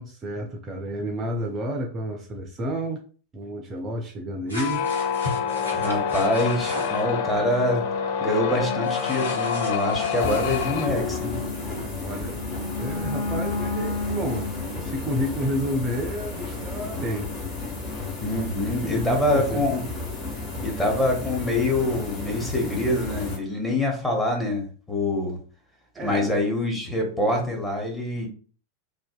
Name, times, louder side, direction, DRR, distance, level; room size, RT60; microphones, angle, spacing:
voice 1, 0.0-3.0 3.3-4.9 11.7-14.5 14.8-17.3 18.7-19.6 25.9-26.3, equal, 25° right, 3 dB, 0.4 m, -30 dB
sound 1, 4.5-7.0 8.8-10.7, left 1 dB, 85° left, 1.0 m, -37 dB
sound 2, 4.5-14.8, left 6 dB, 50° left, 0.4 m, -28 dB
voice 2, 5.7-7.8 8.2-11.4 18.2-19.8 20.6-25.4 26.0-28.3, left 1 dB, 10° left, 1 dB, 0.8 m, -25 dB
sound 3, 10.2-23.4, left 3 dB, 30° left, 1.1 m, -33 dB
2.5 x 2.1 x 2.4 m, 0.41 s
figure-of-eight pair, 90°, 0 cm